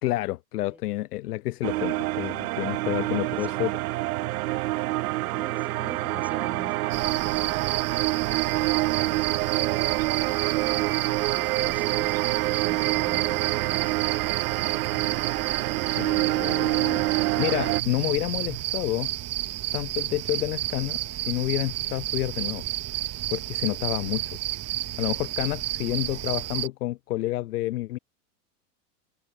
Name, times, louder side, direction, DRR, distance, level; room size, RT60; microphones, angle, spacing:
voice 1, 0.0-3.7 16.0-19.1 19.7-22.7 23.3-24.4 25.0-28.0, left 16 dB, 65° left, 2.6 m, -29 dB
sound 1, 1.6-17.8, right 19 dB, 60° right, 2.3 m, -27 dB
sound 2, 2.6-18.6, right 13 dB, 80° right, 2.2 m, -39 dB
voice 2, 2.8-3.5 5.1-12.1 12.4-13.9, right 1 dB, 5° right, 7.7 m, -46 dB
sound 3, 6.9-26.7, right 14 dB, 30° right, 3.9 m, -32 dB
supercardioid pair, 135°, 48 cm